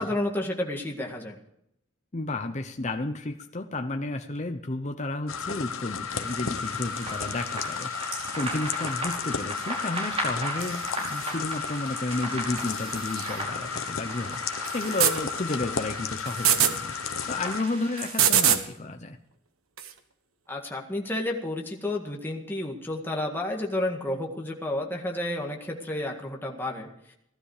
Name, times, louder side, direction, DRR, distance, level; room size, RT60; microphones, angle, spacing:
voice 1, 0.0-1.4 20.5-26.9, left 1 dB, 10° left, 0 dB, 1.9 m, -31 dB
voice 2, 2.1-17.0 17.3-19.2, left 2 dB, 35° left, 6 dB, 0.8 m, -32 dB
sound 1, 5.3-17.6, left 6 dB, 80° left, 1.1 m, -33 dB
sound 2, 6.1-18.1, right 1 dB, 30° right, 5.6 m, -37 dB
sound 3, 10.6-11.3 12.6-13.4 14.6-15.2 16.3-16.7 18.0-18.6 19.8-19.9, right 9 dB, 90° right, 1.3 m, -25 dB
17.0 x 12.5 x 5.0 m, 0.76 s
head